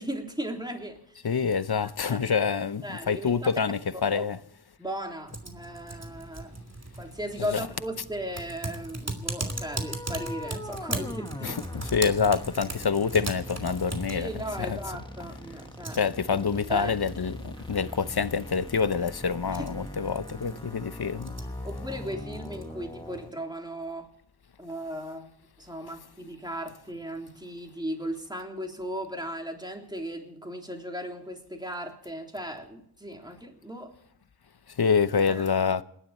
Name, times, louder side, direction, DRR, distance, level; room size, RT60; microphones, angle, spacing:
voice 1, 0.0-1.3 2.1-2.2 2.8-3.3 4.1-4.2 4.8-6.6 7.0-11.6 14.1-17.1 19.5-19.7 20.4-20.6 21.4-24.1 24.6-25.3 25.6-33.9 35.3-35.5, equal, 10° right, 3.5 m, -37 dB
voice 2, 1.2-4.4 11.4-11.6 11.9-14.3 14.7-14.8 16.0-21.3 34.8-35.8, left 6 dB, 70° left, 0.8 m, -26 dB
Typing, 5.3-23.3, right 2 dB, 40° right, 2.8 m, -39 dB
sound 1, 9.4-23.3, left 1 dB, 10° left, 1.7 m, -41 dB
28.0 x 11.0 x 4.3 m
wide cardioid pair, 60°, 40 cm